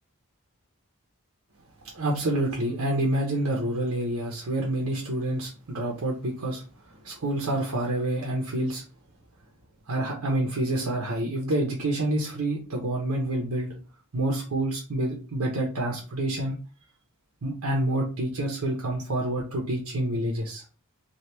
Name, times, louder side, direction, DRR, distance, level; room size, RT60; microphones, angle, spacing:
voice 1, 1.9-6.6 7.0-8.8 9.9-13.7 14.1-16.6 17.4-20.6, right 1 dB, 70° right, -1 dB, 0.8 m, -28 dB
2.9 x 2.4 x 3.3 m, 0.34 s
head